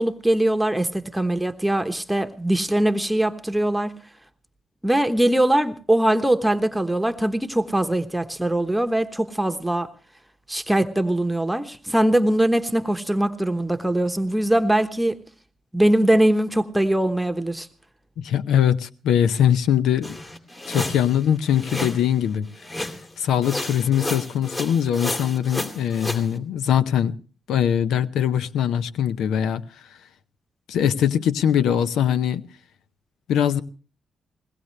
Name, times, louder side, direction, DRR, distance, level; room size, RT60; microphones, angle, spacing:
voice 1, 0.0-3.9 4.8-9.9 10.5-15.2 15.7-17.7, right 1 dB, 5° right, 1.1 m, -21 dB
voice 2, 18.2-20.2 20.7-22.5 23.2-27.2 27.5-29.6 30.7-32.4 33.3-33.6, left 9 dB, 85° left, 0.6 m, -21 dB
sound 1, 20.0-22.1 22.6-23.1 23.4-26.3, left 1 dB, 30° left, 2.7 m, -31 dB
21.0 x 17.5 x 3.2 m
supercardioid pair, 55°, 0 cm